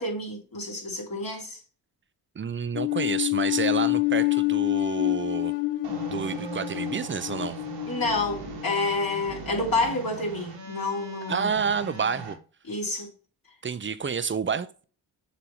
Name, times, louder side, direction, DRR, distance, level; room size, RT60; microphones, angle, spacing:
voice 1, 0.0-1.6 7.9-11.5 12.7-13.1, left 2 dB, 50° left, 3.1 m, -29 dB
voice 2, 2.3-5.5 6.1-7.6 11.3-12.4 13.6-14.8, right 6 dB, 25° right, 0.7 m, -29 dB
sound 1, 2.7-9.1, left 22 dB, 85° left, 0.6 m, -27 dB
sound 2, 5.8-12.3, right 4 dB, 70° right, 1.6 m, -40 dB
7.1 x 3.0 x 4.8 m
supercardioid pair, 45°, 44 cm